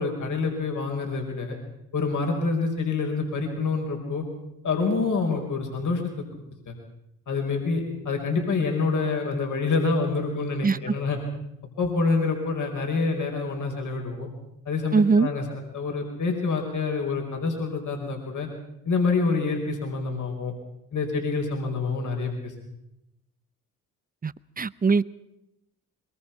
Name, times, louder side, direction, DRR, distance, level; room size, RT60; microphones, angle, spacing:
voice 1, 0.0-1.6 1.9-4.2 4.6-6.2 6.7-6.8 7.3-11.2 11.8-14.3 14.6-15.4 15.7-18.5 18.8-20.5 20.9-22.5, left 4 dB, 55° left, 2 dB, 5.0 m, -27 dB
voice 2, 14.9-15.3 24.2-25.0, right 4 dB, 25° right, 18 dB, 0.8 m, -21 dB
23.5 x 22.5 x 5.8 m, 0.87 s
hypercardioid pair, 55°, 37 cm